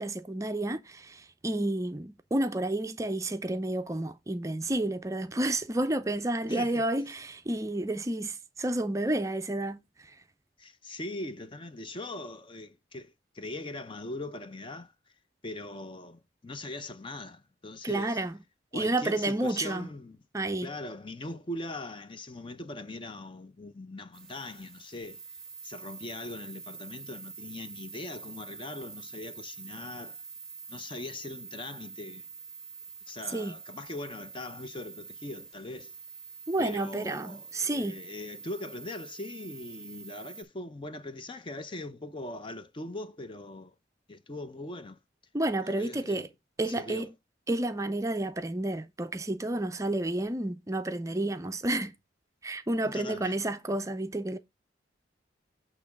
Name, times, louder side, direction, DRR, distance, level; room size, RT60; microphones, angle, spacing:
voice 1, 0.0-10.1 17.8-18.4 18.7-19.9 20.3-20.7 33.3-33.5 36.5-38.0 45.3-46.3 46.6-47.1 47.5-52.0 52.4-54.4, right 1 dB, 20° right, 0.5 m, -30 dB
voice 2, 6.5-6.9 10.6-14.9 15.4-18.2 18.7-20.2 20.6-25.2 25.6-30.2 30.7-32.2 33.1-35.9 36.6-43.7 44.1-45.0 45.6-46.3 46.6-47.1 52.8-53.4, left 2 dB, 30° left, 0.5 m, -41 dB
sound 1, 24.1-40.4, right 5 dB, 5° left, 1.8 m, -46 dB
8.5 x 3.0 x 5.8 m
head